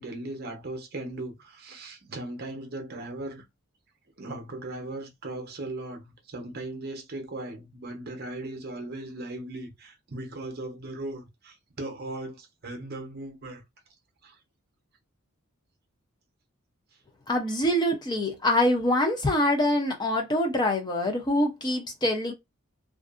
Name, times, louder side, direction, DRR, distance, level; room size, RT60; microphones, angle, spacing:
voice 1, 0.0-3.5 4.2-13.6 14.2-14.4, right 2 dB, 45° right, 0.7 m, -38 dB
voice 2, 17.3-22.3, left 1 dB, 20° left, 0.5 m, -25 dB
2.5 x 2.4 x 2.4 m
head